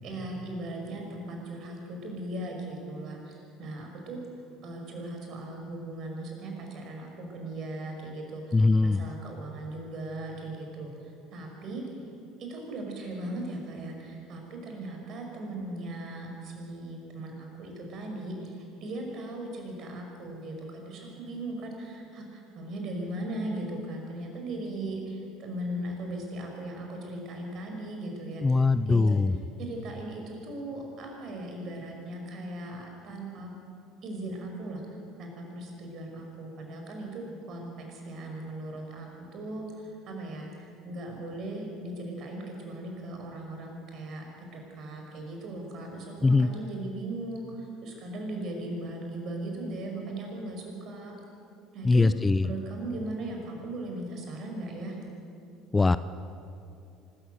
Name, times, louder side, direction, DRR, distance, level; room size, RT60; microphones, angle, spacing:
voice 1, 0.0-4.2 4.6-11.8 12.4-28.6 28.9-29.2 29.6-33.5 34.0-51.1 51.7-52.2 52.4-55.0, right 1 dB, 50° right, 2 dB, 5.5 m, -38 dB
voice 2, 8.5-9.0 28.4-29.4 46.2-46.5 51.9-52.5 55.7-56.0, left 3 dB, 20° left, 14 dB, 0.6 m, -21 dB
24.5 x 14.0 x 8.1 m, 2.6 s
hypercardioid pair, 65°, 0 cm